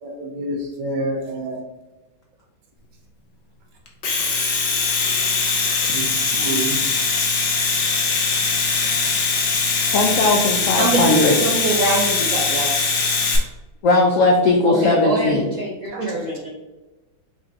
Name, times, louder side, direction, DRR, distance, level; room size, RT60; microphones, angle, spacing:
voice 1, 0.0-1.6 5.9-6.1 6.4-6.8 15.9-16.1, right 2 dB, 85° right, 0 dB, 1.5 m, -27 dB
Domestic sounds home sounds, 3.9-13.4, left 4 dB, 55° left, 1.0 m, -21 dB
voice 2, 9.9-11.4 13.8-15.5, left 2 dB, 85° left, 0 dB, 0.7 m, -18 dB
voice 3, 10.8-12.7 14.7-16.5, right 2 dB, 65° right, -3 dB, 0.8 m, -24 dB
4.0 x 2.5 x 4.5 m, 1.1 s
omnidirectional pair, 2.1 m